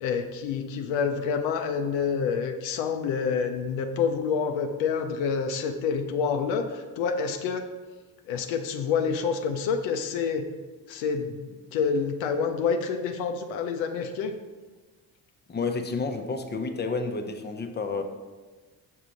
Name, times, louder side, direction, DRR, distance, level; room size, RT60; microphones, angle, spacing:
voice 1, 0.0-7.7 8.3-10.5 10.9-14.4, left 6 dB, 80° left, 6 dB, 0.6 m, -28 dB
voice 2, 15.5-18.0, left 4 dB, 20° left, 6 dB, 0.7 m, -30 dB
5.6 x 4.7 x 3.8 m, 1.3 s
hypercardioid pair, 45°, 46 cm